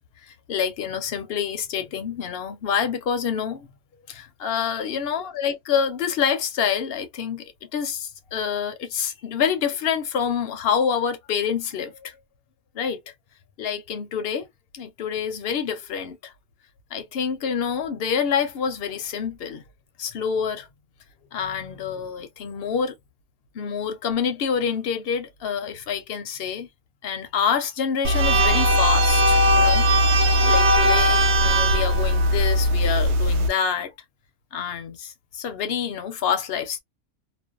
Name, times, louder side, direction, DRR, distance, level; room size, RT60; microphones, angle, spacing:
voice 1, 0.3-3.7 4.1-12.2 12.7-13.0 13.6-14.5 14.7-16.3 16.9-19.6 20.0-20.7 21.3-23.0 23.5-26.7 27.0-33.9 34.5-36.8, left 7 dB, 60° left, 0.7 m, -27 dB
sound 1, 28.0-33.5, equal, 70° right, 0.8 m, -19 dB
2.5 x 2.1 x 2.3 m
omnidirectional pair, 1.3 m